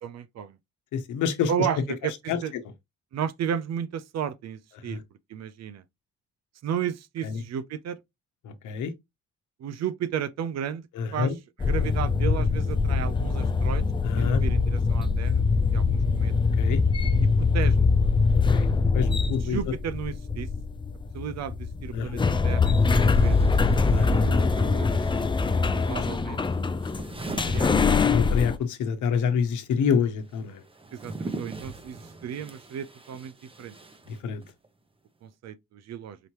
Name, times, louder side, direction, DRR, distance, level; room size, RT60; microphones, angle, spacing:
voice 1, 0.0-0.6 1.5-2.5 3.1-5.0 5.3-5.8 6.6-8.0 9.6-10.8 11.1-11.3 11.6-13.8 14.2-15.4 15.7-16.3 17.2-17.9 19.4-20.5 21.1-23.4 24.0-24.9 25.7-26.4 27.2-28.1 30.9-33.3 33.6-33.8 35.2-36.2, right 9 dB, 60° right, 0.6 m, -33 dB
voice 2, 0.9-1.5 2.3-2.4 4.8-5.0 7.2-7.4 8.4-8.9 10.9-11.3 14.0-14.4 16.6-16.8 18.5-18.7 18.9-19.6 21.9-22.2 23.9-24.3 28.1-30.6 34.2-34.4, left 6 dB, 80° left, 1.0 m, -27 dB
sound 1, 11.6-28.6, left 4 dB, 15° left, 0.4 m, -23 dB
sound 2, 21.8-21.9 22.7-28.6 28.8-34.7, right 2 dB, 20° right, 0.9 m, -43 dB
5.0 x 2.8 x 3.0 m
cardioid pair, 90°, 30 cm